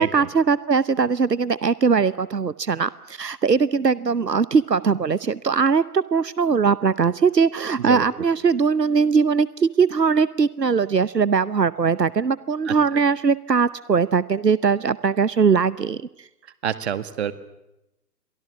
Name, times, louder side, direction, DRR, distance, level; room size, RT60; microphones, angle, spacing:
voice 1, 0.0-16.0, right 5 dB, 85° right, 18 dB, 0.9 m, -20 dB
voice 2, 16.6-17.3, right 9 dB, 45° right, 12 dB, 1.9 m, -26 dB
29.5 x 23.5 x 7.2 m, 0.91 s
figure-of-eight pair, 130°, 48 cm